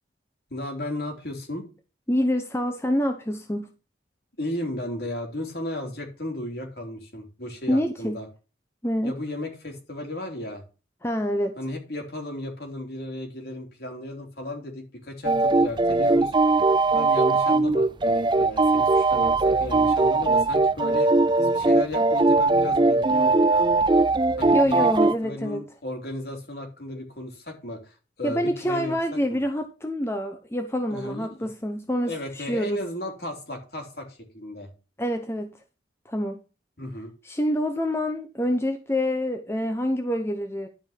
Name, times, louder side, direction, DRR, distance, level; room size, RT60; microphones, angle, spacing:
voice 1, 0.5-1.7 4.4-8.3 9.0-10.6 11.6-16.3 16.9-21.1 21.4-23.7 24.4-24.9 25.2-29.4 30.9-31.3 32.0-34.7 36.8-37.1, left 1 dB, 55° left, 3.3 m, -35 dB
voice 2, 2.1-3.7 7.7-8.2 8.8-9.2 11.0-11.6 24.5-25.6 28.2-32.8 35.0-35.5 36.1-36.4 37.2-40.7, equal, 15° left, 0.9 m, -26 dB
sound 1, 15.2-25.1, right 3 dB, 25° right, 0.4 m, -20 dB
11.5 x 5.3 x 5.9 m
head